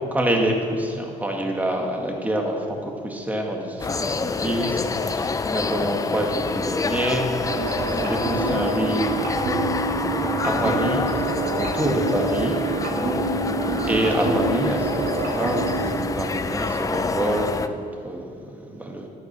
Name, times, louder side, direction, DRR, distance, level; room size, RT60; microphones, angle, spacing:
voice 1, 0.1-9.2 10.4-11.1 11.6-12.6 13.8-18.2 18.5-19.1, right 1 dB, 10° right, 1 dB, 1.9 m, -26 dB
sound 1, 3.8-17.7, left 4 dB, 20° left, 0.5 m, -27 dB
sound 2, 7.5-16.0, right 4 dB, 70° right, 2.2 m, -27 dB
12.0 x 9.3 x 6.1 m, 2.4 s
cardioid pair, 110°, 17 cm